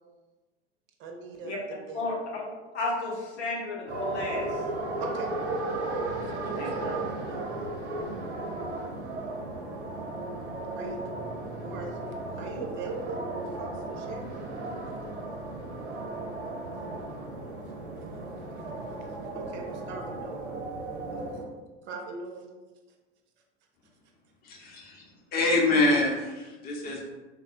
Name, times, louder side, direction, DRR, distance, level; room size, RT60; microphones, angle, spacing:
voice 1, 1.0-2.1 5.0-5.3 6.2-7.7 10.8-11.2 11.6-12.0 12.3-14.4 19.3-20.6 21.1-21.2 21.8-22.5, right 3 dB, 35° right, 3 dB, 0.5 m, -40 dB
voice 2, 2.7-4.6 6.4-6.7, left 2 dB, 75° left, -4 dB, 0.9 m, -32 dB
sound 1, 3.9-21.4, right 2 dB, 85° right, 0.6 m, -35 dB
voice 3, 24.4-25.0 25.3-27.0, left 2 dB, 30° left, -1 dB, 0.7 m, -25 dB
3.4 x 2.0 x 2.5 m, 1.2 s
hypercardioid pair, 90°, 34 cm